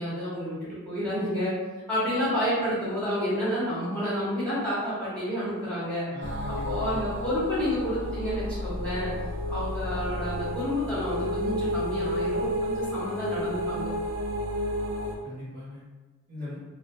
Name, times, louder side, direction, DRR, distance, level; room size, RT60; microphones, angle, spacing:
voice 1, 0.0-1.5 1.9-6.1 6.6-9.1 9.5-13.9, equal, 5° left, -12 dB, 0.9 m, -29 dB
voice 2, 6.1-7.1 15.2-15.8 16.3-16.6, left 1 dB, 45° right, -11 dB, 0.9 m, -39 dB
sound 1, 6.2-15.2, equal, 60° right, 0.4 m, -32 dB
2.4 x 2.1 x 2.5 m, 1.3 s
head